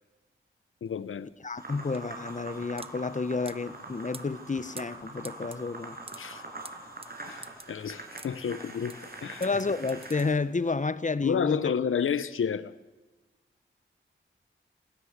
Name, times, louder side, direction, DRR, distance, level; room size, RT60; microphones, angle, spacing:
voice 1, 0.8-1.3 6.2-6.4 7.3-9.5 11.2-12.7, left 7 dB, 85° left, 0.8 m, -31 dB
sound 1, 0.9-10.8, right 3 dB, 30° right, 1.1 m, -49 dB
voice 2, 1.4-6.0 9.4-11.6, left 4 dB, 40° left, 1.1 m, -30 dB
sound 2, 1.6-10.3, right 2 dB, 50° right, 6.3 m, -44 dB
27.5 x 16.5 x 8.1 m
cardioid pair, 60°, 20 cm